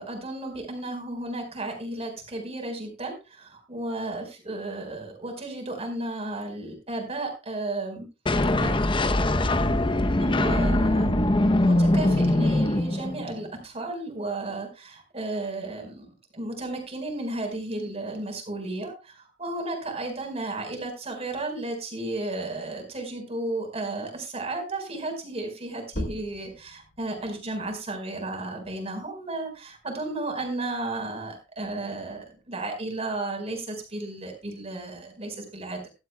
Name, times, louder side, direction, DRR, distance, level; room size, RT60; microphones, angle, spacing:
voice 1, 0.0-8.0 8.6-8.8 10.2-11.1 11.6-16.1 16.3-35.9, right 2 dB, 35° right, 4 dB, 4.6 m, -33 dB
sound 1, 8.3-13.4, left 1 dB, 25° left, 0.7 m, -22 dB
sound 2, 25.9-31.1 31.5-33.3, left 1 dB, 75° left, 3.3 m, -42 dB
15.5 x 12.5 x 2.3 m, 0.28 s
head